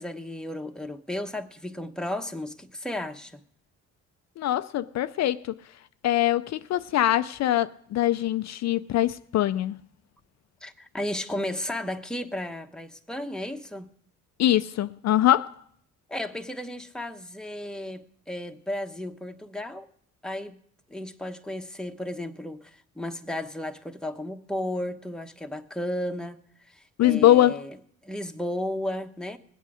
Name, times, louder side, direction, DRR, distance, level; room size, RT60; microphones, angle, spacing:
voice 1, 0.0-3.4 10.6-13.9 16.1-19.9 20.2-20.6 20.9-27.8 28.0-29.4, left 1 dB, ahead, 0.9 m, -34 dB
voice 2, 4.4-5.5 6.0-9.8 14.4-15.5 27.0-27.6, left 13 dB, 60° left, 0.4 m, -23 dB
20.5 x 8.3 x 4.9 m
cardioid pair, 90°, 30 cm